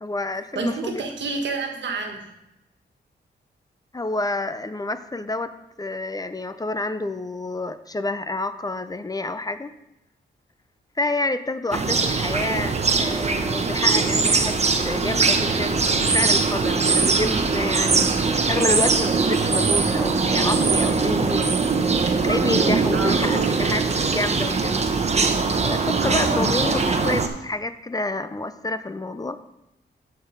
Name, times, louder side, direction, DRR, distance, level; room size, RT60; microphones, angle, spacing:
voice 1, 0.0-1.0 3.9-5.5 5.8-9.7 11.0-14.6 14.8-21.6 22.2-23.9 24.1-25.1 25.6-29.4, left 2 dB, 20° left, 11 dB, 0.5 m, -28 dB
voice 2, 0.5-2.3 22.9-23.5 26.0-26.5, right 3 dB, 75° right, 4 dB, 1.5 m, -29 dB
sound 1, 11.7-27.3, right 4 dB, 35° right, 1.0 m, -21 dB
13.0 x 4.6 x 5.1 m, 0.89 s
cardioid pair, 95°, 19 cm